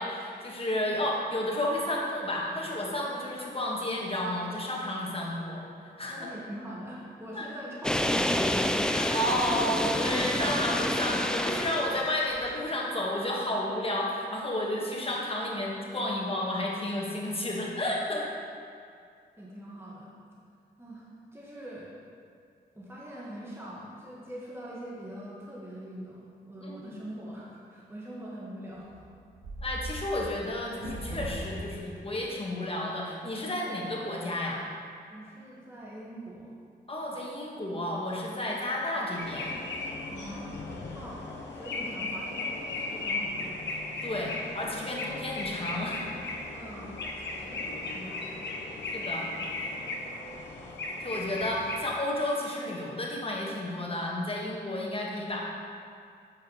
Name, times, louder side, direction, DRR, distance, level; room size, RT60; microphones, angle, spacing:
voice 1, 0.0-5.7 6.0-6.3 7.3-7.5 8.9-18.3 26.6-27.0 29.6-34.6 36.9-39.6 44.0-46.0 48.9-49.3 51.0-55.4, left 1 dB, 30° left, -3 dB, 1.4 m, -32 dB
voice 2, 6.2-8.8 9.3-9.4 19.4-20.1 20.8-21.1 21.3-21.9 22.7-29.0 35.1-36.6 37.7-37.8 38.3-38.4 40.1-40.5 40.9-43.6 46.5-47.0 47.3-48.5, right 1 dB, 10° right, -6 dB, 1.3 m, -43 dB
sound 1, 7.8-12.5, left 1 dB, 5° left, 0.4 m, -28 dB
sound 2, 28.7-32.1, right 1 dB, 80° right, 1.3 m, -39 dB
sound 3, 39.2-51.8, left 2 dB, 70° left, 0.9 m, -36 dB
7.7 x 4.8 x 3.0 m, 2.3 s
supercardioid pair, 45°, 19 cm